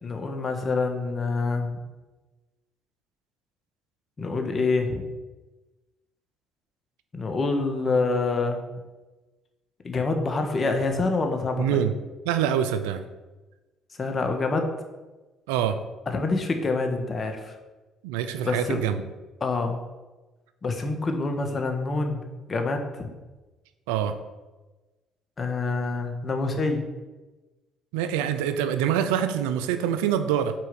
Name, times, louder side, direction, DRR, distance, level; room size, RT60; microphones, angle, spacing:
voice 1, 0.0-1.7 4.2-5.1 7.1-8.6 9.8-11.8 14.0-14.7 16.1-17.5 18.4-18.8 19.4-19.8 20.6-22.2 22.5-23.1 25.4-26.8, left 3 dB, 40° left, 5 dB, 1.5 m, -26 dB
voice 2, 11.6-11.9 12.2-13.0 15.5-15.8 18.0-19.0 23.9-24.1 27.9-30.5, right 9 dB, 90° right, 10 dB, 0.6 m, -25 dB
7.6 x 4.7 x 7.0 m, 1.2 s
supercardioid pair, 70°, 0 cm